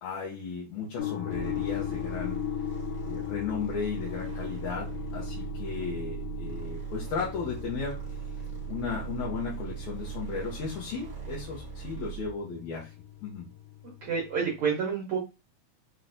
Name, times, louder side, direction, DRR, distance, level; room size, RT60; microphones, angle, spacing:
voice 1, 0.0-2.5 3.0-7.9 8.7-12.9 13.2-13.5, left 5 dB, 70° left, -4 dB, 1.9 m, -35 dB
sound 1, 1.0-14.7, left 14 dB, 90° left, 2.5 m, -39 dB
sound 2, 1.3-12.4, right 10 dB, 60° right, 0.9 m, -39 dB
voice 2, 14.0-15.2, right 6 dB, 85° right, -2 dB, 1.2 m, -28 dB
5.9 x 2.2 x 2.5 m, 0.28 s
omnidirectional pair, 3.7 m